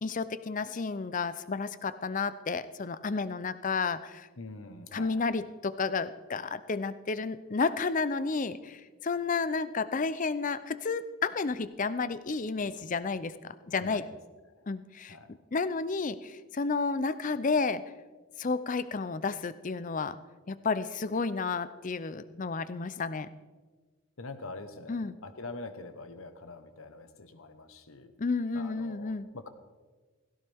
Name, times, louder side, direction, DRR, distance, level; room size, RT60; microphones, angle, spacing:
voice 1, 0.0-4.3 4.9-14.1 14.7-15.2 15.5-17.8 18.4-20.2 20.5-23.3 24.9-25.1 28.2-29.3, left 4 dB, 35° left, 14 dB, 0.5 m, -31 dB
voice 2, 4.4-5.2 13.8-14.1 15.1-15.3 24.2-28.1 28.5-29.5, left 3 dB, 70° left, 9 dB, 1.2 m, -44 dB
16.5 x 16.5 x 3.5 m, 1.4 s
head